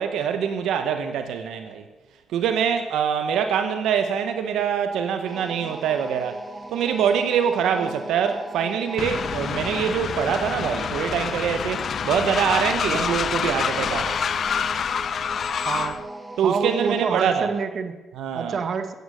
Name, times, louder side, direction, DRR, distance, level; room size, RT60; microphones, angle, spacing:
voice 1, 0.0-1.8 2.3-6.4 6.7-14.2 16.4-17.5 18.2-18.6, right 7 dB, 80° right, 8 dB, 1.0 m, -24 dB
sound 1, 5.3-17.1, right 2 dB, 15° right, 1.3 m, -38 dB
Train, 9.0-16.0, left 7 dB, 55° left, 0.6 m, -27 dB
voice 2, 15.6-16.1 16.4-18.0 18.3-18.9, right 5 dB, 55° right, 9 dB, 1.2 m, -27 dB
15.0 x 9.3 x 6.5 m, 1.2 s
cardioid pair, 90°, 0 cm